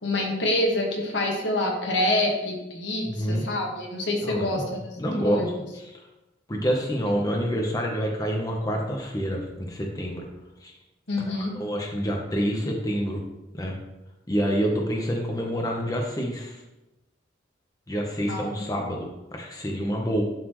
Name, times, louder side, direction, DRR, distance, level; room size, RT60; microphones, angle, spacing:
voice 1, 0.0-4.9 5.2-5.5 11.1-11.5 18.3-18.8, left 1 dB, 80° left, 0 dB, 1.5 m, -26 dB
voice 2, 3.0-3.5 4.2-5.5 5.8-6.0 6.5-10.2 10.6-10.7 11.2-13.2 13.5-13.8 14.3-16.6 17.9-20.2, equal, 20° left, 0 dB, 0.8 m, -28 dB
11.0 x 4.2 x 3.1 m, 0.99 s
head